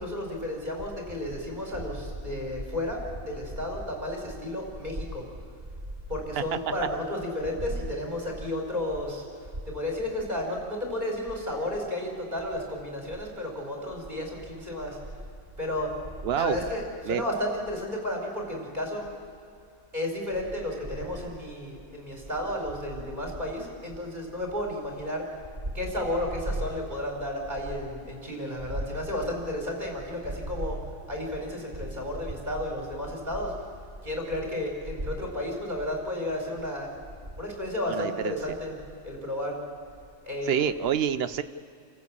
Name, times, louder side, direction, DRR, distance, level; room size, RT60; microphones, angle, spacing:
voice 1, 0.0-5.2 6.1-9.2 9.6-15.0 15.6-15.9 16.4-19.1 19.9-25.2 25.7-30.8 31.1-33.5 34.0-36.9 37.4-38.8 39.0-39.6 40.3-40.7, left 1 dB, 35° right, 0 dB, 4.7 m, -32 dB
voice 2, 16.2-16.6 17.1-17.2 37.9-38.3 40.5-41.4, right 9 dB, 55° right, 13 dB, 0.9 m, -27 dB
28.0 x 14.5 x 8.6 m, 2.3 s
omnidirectional pair, 1.3 m